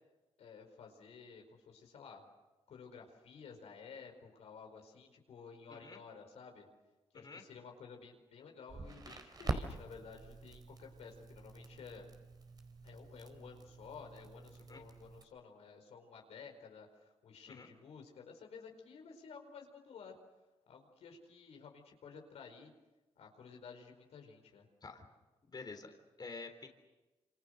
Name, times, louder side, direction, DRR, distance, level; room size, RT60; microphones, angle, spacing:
voice 1, 0.4-2.2 2.7-6.7 7.1-12.0 12.8-20.2 20.7-22.7 23.2-24.7, left 5 dB, 80° left, 3 dB, 4.8 m, -53 dB
Crackle, 8.7-15.2, right 3 dB, 40° right, 4.2 m, -45 dB
voice 2, 25.4-26.7, left 4 dB, 40° left, 5 dB, 3.5 m, -49 dB
27.0 x 26.5 x 6.6 m, 1.1 s
cardioid pair, 70°, 11 cm